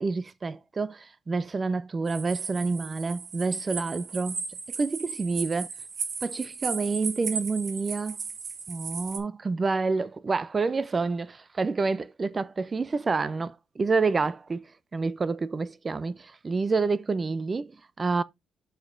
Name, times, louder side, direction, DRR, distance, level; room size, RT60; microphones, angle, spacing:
voice 1, 0.0-4.4 4.7-5.7 6.2-8.2 8.7-18.2, right 4 dB, 30° right, 0.4 m, -28 dB
sound 1, 2.1-9.2, right 5 dB, 55° right, 1.7 m, -36 dB
6.9 x 6.6 x 2.5 m
cardioid pair, 90°, 0 cm